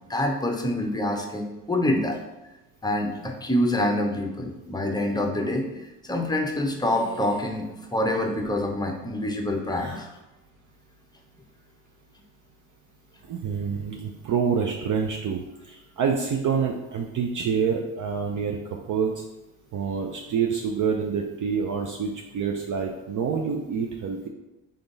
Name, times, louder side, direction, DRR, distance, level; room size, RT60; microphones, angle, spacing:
voice 1, 0.1-2.2 2.8-10.1, left 1 dB, 10° left, 2 dB, 0.8 m, -26 dB
sound 1, 6.8-7.6 7.9-8.4 9.7-10.2, right 3 dB, 70° right, 1.4 m, -44 dB
voice 2, 13.3-18.6 18.9-19.2 19.7-24.3, right 6 dB, 40° right, 2 dB, 0.6 m, -27 dB
3.7 x 3.5 x 3.9 m, 0.97 s
hypercardioid pair, 60°, 47 cm